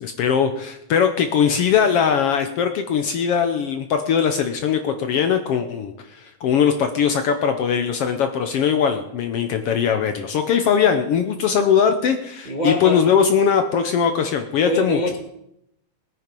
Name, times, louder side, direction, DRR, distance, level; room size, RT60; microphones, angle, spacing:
voice 1, 0.0-15.0, left 7 dB, 65° left, 7 dB, 1.6 m, -20 dB
voice 2, 12.4-13.0 14.6-15.2, equal, 25° right, 1 dB, 1.0 m, -24 dB
19.5 x 9.1 x 5.3 m, 0.80 s
omnidirectional pair, 3.3 m